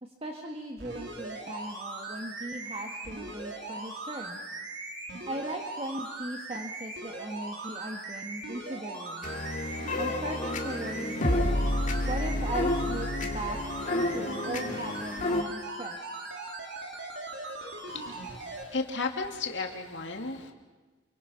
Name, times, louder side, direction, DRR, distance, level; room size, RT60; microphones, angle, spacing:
voice 1, 0.0-4.4 5.3-9.3 10.0-11.6 12.0-13.6 13.9-16.0, right 1 dB, 30° right, 2 dB, 1.7 m, -38 dB
sound 1, 0.8-18.6 19.2-19.3, right 2 dB, 65° right, 4.1 m, -40 dB
sound 2, 9.2-15.4, left 1 dB, 40° left, 2.3 m, -30 dB
voice 2, 17.9-20.5, left 3 dB, 70° left, 3 dB, 2.6 m, -34 dB
28.5 x 24.5 x 5.8 m, 1.3 s
head